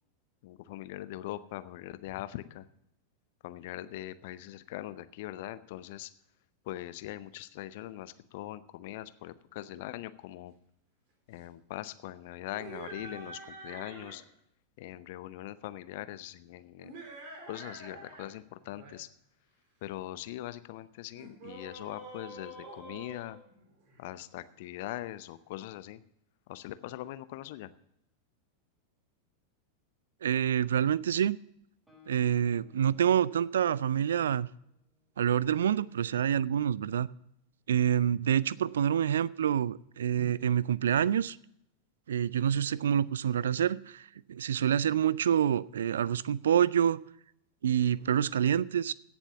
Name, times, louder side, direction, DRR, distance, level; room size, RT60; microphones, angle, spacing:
voice 1, 0.4-2.7 3.4-6.1 6.7-10.5 11.3-14.2 14.8-16.9 17.5-19.1 19.8-23.4 24.0-26.0 26.5-27.7, left 14 dB, 50° left, 14 dB, 0.7 m, -41 dB
sound 1, 12.4-14.2 16.8-18.3 18.6-19.0 21.1-24.0, right 2 dB, 45° right, 3.9 m, -47 dB
voice 2, 30.2-31.4 32.1-34.5 35.2-37.1 37.7-41.4 42.1-47.0 47.6-48.9, right 9 dB, 65° right, 22 dB, 0.4 m, -27 dB
Guitar, 31.9-35.5, left 8 dB, 5° right, 5.3 m, -62 dB
16.5 x 7.2 x 5.8 m, 0.75 s
figure-of-eight pair, 90°, 0 cm